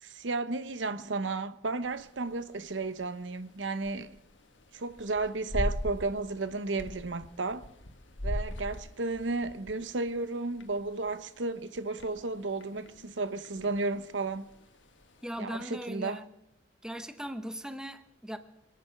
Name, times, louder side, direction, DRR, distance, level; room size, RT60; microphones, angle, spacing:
voice 1, 0.0-4.1 4.7-7.7 8.2-14.5 15.4-16.2, right 3 dB, 90° right, 0.9 m, -33 dB
sound 1, 1.8-15.4, left 1 dB, 90° left, 1.5 m, -42 dB
voice 2, 15.2-16.3 16.8-18.4, equal, 5° right, 1.0 m, -39 dB
25.0 x 9.5 x 5.9 m
head